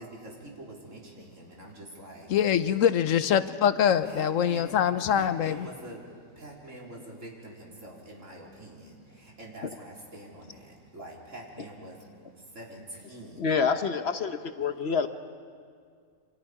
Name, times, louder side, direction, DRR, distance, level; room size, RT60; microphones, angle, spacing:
voice 1, 0.0-2.4 4.0-13.6, right 1 dB, 70° right, -2 dB, 4.1 m, -45 dB
voice 2, 2.3-5.7, left 9 dB, 80° left, 13 dB, 1.2 m, -24 dB
voice 3, 13.4-15.1, left 5 dB, 55° left, 9 dB, 1.1 m, -27 dB
28.0 x 25.5 x 4.9 m, 2.1 s
omnidirectional pair, 1.4 m